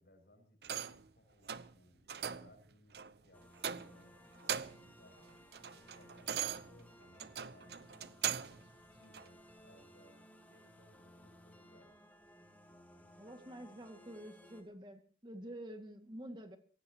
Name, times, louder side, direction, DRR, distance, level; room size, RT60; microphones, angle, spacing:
voice 1, 0.0-3.5 3.7-5.3 5.7-7.8 8.5-11.9, left 1 dB, 65° left, 5 dB, 7.1 m, -65 dB
sound 1, 0.6-1.1 1.5-1.7 2.1-2.5 2.9-3.1 3.6-4.1 4.4-4.9 5.3-8.6 9.1-9.3, right 8 dB, 65° right, 0.8 m, -40 dB
sound 2, 3.3-14.6, equal, 10° left, 2.6 m, -60 dB
voice 2, 13.1-16.6, right 1 dB, 25° right, 5 dB, 2.2 m, -48 dB
24.5 x 17.5 x 3.0 m, 0.39 s
head